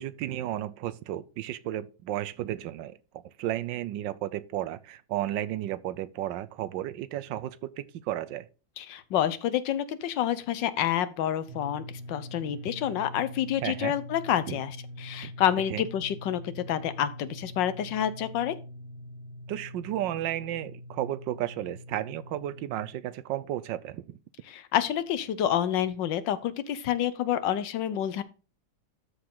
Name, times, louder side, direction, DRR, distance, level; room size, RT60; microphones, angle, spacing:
voice 1, 0.0-3.0 3.4-8.5 13.6-13.9 14.5-14.6 15.2-15.3 15.7-15.8 19.5-24.2, right 13 dB, 90° right, 1.3 m, -33 dB
voice 2, 8.8-18.5 24.5-28.2, left 10 dB, 80° left, 1.5 m, -28 dB
sound 1, 11.5-22.9, left 1 dB, 40° right, 1.6 m, -44 dB
13.0 x 4.8 x 3.8 m
omnidirectional pair, 2.0 m